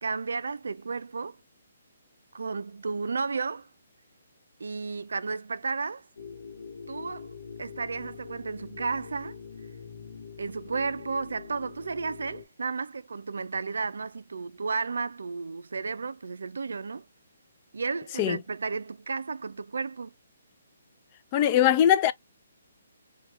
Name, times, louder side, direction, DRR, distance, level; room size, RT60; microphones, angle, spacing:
voice 1, 0.0-1.4 2.3-3.7 4.6-6.1 6.9-7.3 7.6-9.4 10.4-17.1 17.7-20.1, right 4 dB, 75° right, 0.3 m, -33 dB
sound 1, 6.2-12.4, left 5 dB, 75° left, 0.8 m, -44 dB
voice 2, 21.3-22.1, left 10 dB, 30° left, 0.3 m, -21 dB
2.8 x 2.2 x 3.0 m
figure-of-eight pair, 140°, 0 cm